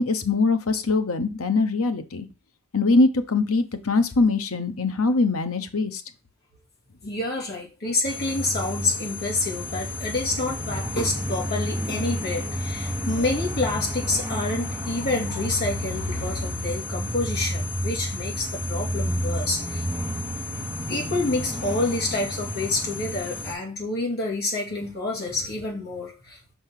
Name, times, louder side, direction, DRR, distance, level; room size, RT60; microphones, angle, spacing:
voice 1, 0.0-2.3 2.7-6.0, left 3 dB, 75° left, 8 dB, 1.0 m, -22 dB
voice 2, 7.0-19.8 20.9-26.5, left 2 dB, 45° left, -3 dB, 2.7 m, -28 dB
sound 1, 8.0-23.5, left 1 dB, 5° right, 4.5 m, -30 dB
5.9 x 5.2 x 5.8 m, 0.29 s
head